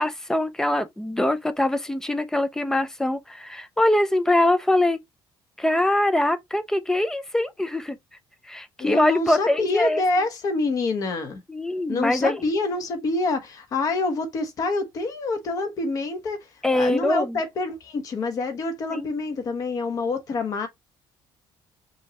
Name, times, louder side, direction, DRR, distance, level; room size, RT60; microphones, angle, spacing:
voice 1, 0.0-5.0 5.6-8.0 8.5-10.0 11.5-12.4 16.6-17.4 18.9-19.1, left 1 dB, 5° left, 0.5 m, -23 dB
voice 2, 8.8-11.4 11.9-20.7, left 3 dB, 40° left, 1.2 m, -26 dB
5.4 x 3.2 x 2.9 m
cardioid pair, 175°, 9 cm